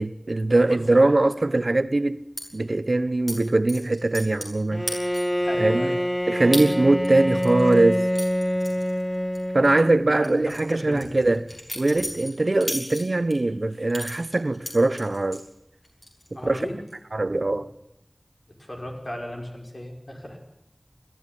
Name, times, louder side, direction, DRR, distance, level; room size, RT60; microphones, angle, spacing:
voice 1, 0.0-2.2 2.5-4.9 5.6-5.9 6.3-8.1 9.5-11.5 11.8-15.4 16.4-16.6 17.1-17.7, right 2 dB, 80° right, 0.9 m, -21 dB
sound 1, 2.4-2.5 3.3-3.4 3.7-4.6 4.9-5.4 5.8-5.9 6.5-6.7 7.0-9.4 9.6-9.8 10.2-13.4 13.9-15.4 15.8-16.3 16.5-16.9, equal, 35° left, 6.6 m, -35 dB
Bowed string instrument, 4.7-10.1, equal, 15° left, 0.9 m, -26 dB
voice 2, 5.4-6.0 9.6-11.3 16.3-16.7 17.1-17.4 18.6-20.4, left 1 dB, 60° left, 5.6 m, -36 dB
21.5 x 14.0 x 9.8 m
wide cardioid pair, 45°, 0 cm